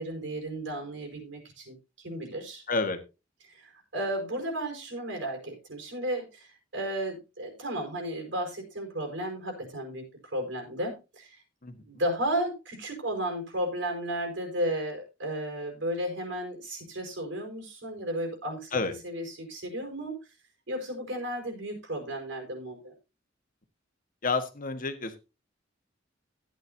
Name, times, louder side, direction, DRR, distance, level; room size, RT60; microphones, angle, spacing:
voice 1, 0.0-2.6 3.4-11.4 11.8-20.2 20.7-22.9, right 1 dB, 70° right, 2 dB, 5.1 m, -34 dB
voice 2, 2.7-3.0 11.6-11.7 18.7-18.9 24.2-25.2, left 3 dB, 45° left, 8 dB, 1.5 m, -29 dB
15.0 x 9.4 x 2.8 m, 0.28 s
head